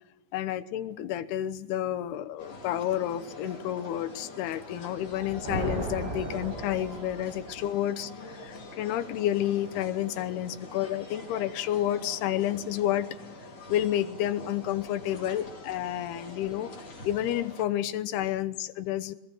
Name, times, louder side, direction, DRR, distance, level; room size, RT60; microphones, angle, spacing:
voice 1, 0.3-13.1 13.7-16.7 17.0-19.2, left 12 dB, 75° left, 12 dB, 2.9 m, -30 dB
sound 1, 2.4-17.6, left 2 dB, 40° left, 5.6 m, -45 dB
sound 2, 5.0-7.6, right 1 dB, 70° right, 8.6 m, -35 dB
23.5 x 21.0 x 6.1 m, 0.92 s
omnidirectional pair, 4.7 m